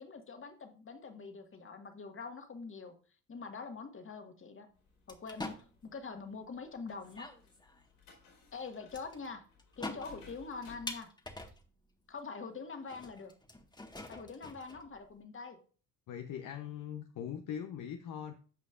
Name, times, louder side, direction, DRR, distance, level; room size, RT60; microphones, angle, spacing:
voice 1, 0.0-2.9 3.3-4.7 5.1-5.7 5.9-7.3 8.5-9.4 9.8-11.1 12.1-13.3 14.1-15.6, left 4 dB, 30° left, 5 dB, 1.8 m, -44 dB
sound 1, 4.8-11.0, left 5 dB, 70° left, 4.7 m, -60 dB
sound 2, 5.1-5.9 6.7-6.8 7.0-7.8 8.9-9.3 9.5-11.8 12.2-12.3 12.9-15.2, left 2 dB, 10° left, 1.5 m, -46 dB
voice 2, 16.1-18.3, left 9 dB, 50° left, 5 dB, 0.9 m, -41 dB
15.0 x 5.1 x 2.5 m, 0.40 s
hypercardioid pair, 65°, 42 cm